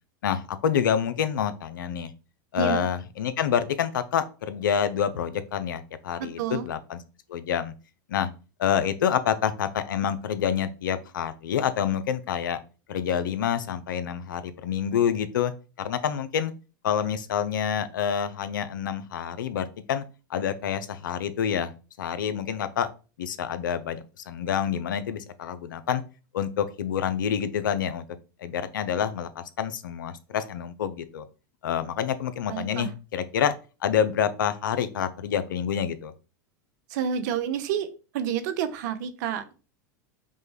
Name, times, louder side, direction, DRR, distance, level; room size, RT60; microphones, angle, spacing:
voice 1, 0.2-2.1 2.5-7.0 7.3-7.7 8.1-8.3 8.6-12.6 12.9-15.5 15.8-16.5 16.8-20.0 20.3-21.7 22.0-22.9 23.2-26.0 26.3-28.0 28.4-31.3 31.6-33.5 33.8-36.1, left 8 dB, 80° left, 12 dB, 0.5 m, -27 dB
voice 2, 2.6-2.9 6.2-6.7 32.5-32.9 36.9-37.9 38.1-39.5, right 8 dB, 65° right, 11 dB, 0.7 m, -29 dB
5.3 x 2.2 x 3.2 m, 0.33 s
hypercardioid pair, 100°, 11 cm